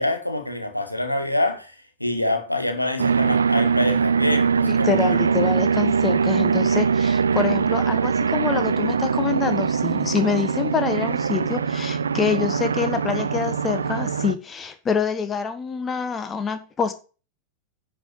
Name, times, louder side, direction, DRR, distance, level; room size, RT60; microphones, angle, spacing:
voice 1, 0.0-1.7 2.0-5.3, left 1 dB, 90° left, 1.6 m, -26 dB
sound 1, 3.0-14.3, right 6 dB, 70° right, 0.5 m, -22 dB
voice 2, 4.6-16.9, left 6 dB, 20° left, 1.2 m, -26 dB
10.5 x 5.5 x 6.6 m
figure-of-eight pair, 90°, 0 cm